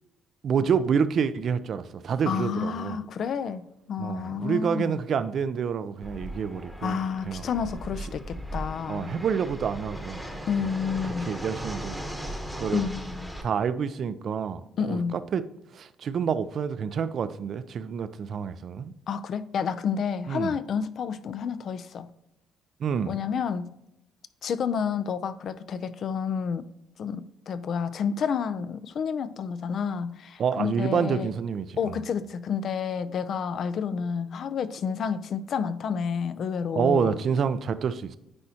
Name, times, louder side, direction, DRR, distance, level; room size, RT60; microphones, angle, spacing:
voice 1, 0.4-3.0 4.0-7.0 7.3-7.5 8.9-10.2 11.0-12.8 13.4-15.4 15.7-18.9 20.3-20.6 22.8-23.2 30.4-31.9 36.8-38.2, right 7 dB, 55° right, 0.4 m, -28 dB
voice 2, 2.3-5.0 6.8-9.1 10.5-11.4 12.7-13.3 14.8-15.2 19.1-22.1 23.1-23.7 24.4-26.7 27.0-31.3 31.8-37.2, left 6 dB, 55° left, 0.5 m, -30 dB
Fixed-wing aircraft airplane, 6.0-13.4, equal, 5° left, 1.0 m, -37 dB
9.8 x 4.2 x 2.8 m
cardioid pair, 90°, 0 cm